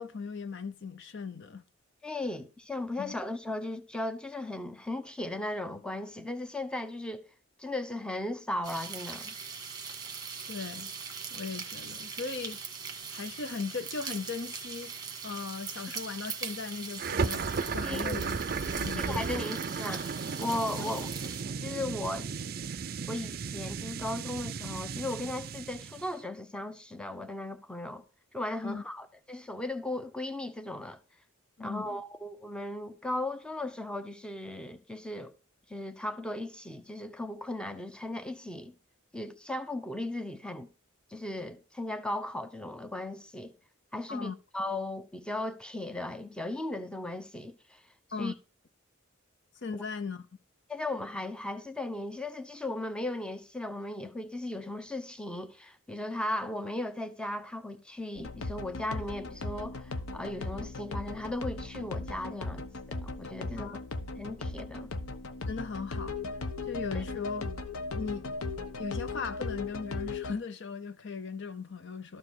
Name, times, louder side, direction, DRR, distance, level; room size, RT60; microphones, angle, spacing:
voice 1, 0.0-1.6 3.0-3.1 10.5-10.9 11.3-12.6 13.1-14.9 15.2-19.3 28.6-28.8 31.6-32.0 44.1-44.4 48.1-48.3 49.6-50.3 63.6-63.8 65.5-66.2 66.6-68.5 68.8-72.2, left 5 dB, 55° left, 0.6 m, -38 dB
voice 2, 2.0-7.3 7.6-9.3 17.8-18.2 19.0-20.1 20.4-21.1 21.6-22.3 23.1-28.0 28.3-31.0 31.6-35.3 35.7-38.7 39.1-40.7 41.1-43.5 43.9-47.8 48.2-48.3 49.7-49.8 50.7-63.8 64.2-64.9 66.9-67.0, left 1 dB, 5° left, 0.7 m, -37 dB
sound 1, 8.6-21.4, right 6 dB, 20° right, 1.6 m, -41 dB
sound 2, 17.0-26.1, right 5 dB, 45° right, 0.5 m, -35 dB
sound 3, 58.2-70.3, left 3 dB, 75° left, 1.0 m, -37 dB
13.0 x 4.8 x 6.3 m
head